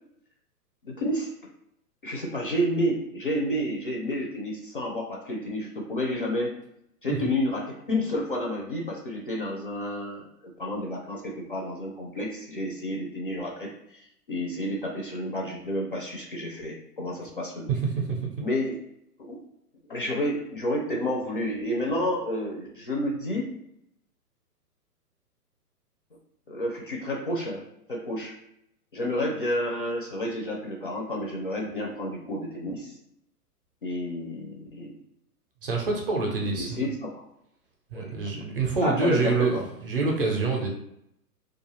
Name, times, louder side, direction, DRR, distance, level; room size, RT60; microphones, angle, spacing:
voice 1, 0.8-1.3 2.0-6.5 7.0-10.3 10.6-14.0 14.3-17.7 18.4-18.8 19.2-19.4 19.9-23.5 26.5-28.3 28.9-33.0 33.8-35.0 36.5-37.2 37.9-38.2 38.8-39.6, left 1 dB, 35° left, -1 dB, 0.4 m, -30 dB
voice 2, 17.7-18.3 35.6-36.8 37.9-40.7, right 4 dB, 35° right, 1 dB, 0.5 m, -26 dB
2.4 x 2.3 x 3.0 m, 0.77 s
hypercardioid pair, 140°, 48 cm